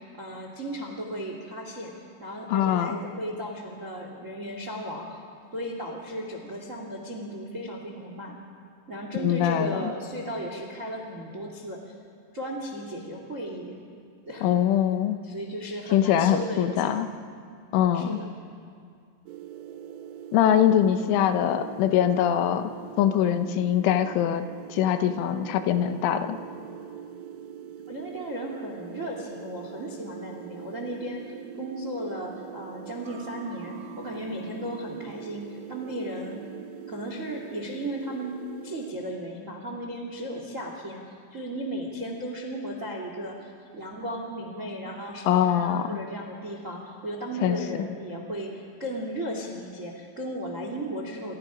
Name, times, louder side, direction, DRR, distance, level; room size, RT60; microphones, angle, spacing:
voice 1, 0.2-1.9 2.2-5.2 5.5-8.4 8.9-11.9 12.3-13.7 14.3-14.5 15.2-17.1 17.9-18.3 27.9-36.4 36.9-38.3 38.6-41.0 41.3-51.3, equal, 35° right, 1 dB, 1.3 m, -35 dB
voice 2, 2.5-3.0 9.2-9.9 14.4-15.2 15.9-17.1 17.7-18.2 20.3-22.7 23.0-24.4 24.7-26.4 45.3-45.9 47.4-47.6, left 10 dB, 75° left, 8 dB, 3.4 m, -23 dB
sound 1, 19.3-38.9, right 9 dB, 80° right, 3.6 m, -42 dB
29.0 x 28.0 x 5.1 m, 2.2 s
omnidirectional pair, 5.8 m